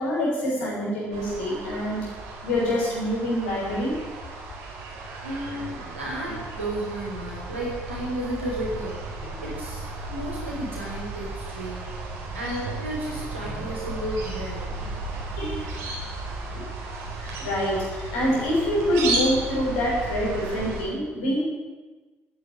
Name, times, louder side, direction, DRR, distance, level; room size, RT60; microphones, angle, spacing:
voice 1, 0.0-2.0 2.4-3.9 15.4-15.7 16.5-16.7 17.1-21.4, equal, 70° left, -4 dB, 6.5 m, -26 dB
sound 1, 1.1-20.8, right 2 dB, 65° right, 3.9 m, -34 dB
voice 2, 5.2-9.1 9.4-11.8 12.3-14.7, right 1 dB, 85° right, -4 dB, 4.8 m, -33 dB
13.5 x 10.5 x 10.0 m, 1.3 s
figure-of-eight pair, 45°, 6 cm